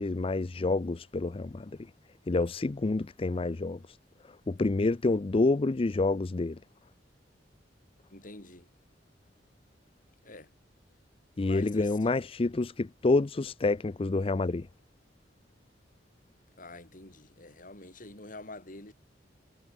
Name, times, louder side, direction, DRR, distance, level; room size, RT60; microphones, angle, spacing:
voice 1, 0.0-1.7 2.3-4.0 4.5-6.6 11.4-14.7, left 3 dB, 30° left, 0.5 m, -28 dB
voice 2, 8.1-8.7 10.2-10.5 11.4-12.1 16.5-18.9, left 2 dB, 45° left, 6.5 m, -46 dB
head